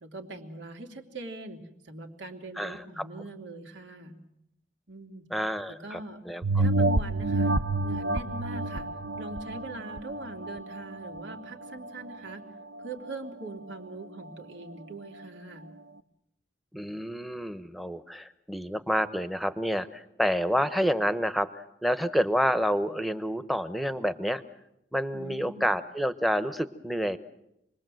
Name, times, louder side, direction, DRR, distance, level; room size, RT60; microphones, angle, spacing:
voice 1, 0.0-4.1 4.9-5.3 5.7-6.2 6.6-7.5 7.8-8.9 9.2-12.4 12.8-15.7 25.1-25.7, right 2 dB, 90° right, 3 dB, 3.0 m, -42 dB
voice 2, 2.6-3.0 5.3-6.0 6.3-6.7 16.7-24.4 24.9-27.2, equal, ahead, 12 dB, 0.9 m, -29 dB
sound 1, 6.4-11.4 11.8-11.9, right 2 dB, 65° right, 0.9 m, -28 dB
27.5 x 21.0 x 7.8 m, 0.80 s
head